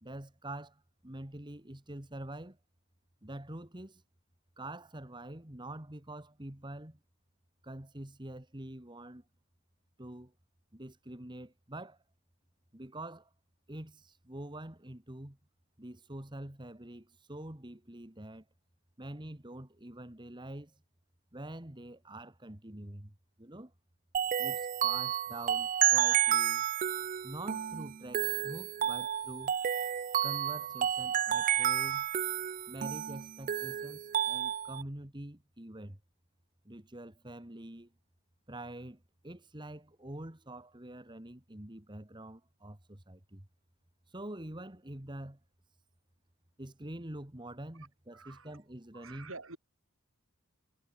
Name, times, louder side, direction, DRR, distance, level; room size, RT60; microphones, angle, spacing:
voice 1, 0.0-2.6 3.2-4.0 4.6-7.0 7.6-9.2 10.0-10.3 10.7-12.0 12.7-13.3 13.7-15.4 15.8-18.5 19.0-20.8 21.3-23.7 24.4-26.7 27.2-29.5 30.2-32.1 32.7-36.0 36.7-37.9 38.5-43.5 44.1-45.4 46.6-49.3, right 1 dB, 20° right, 1.8 m, -45 dB
sound 1, 24.1-34.8, right 10 dB, 40° right, 0.3 m, -31 dB
voice 2, 48.1-48.6 48.9-49.6, right 3 dB, 70° right, 6.0 m, -48 dB
head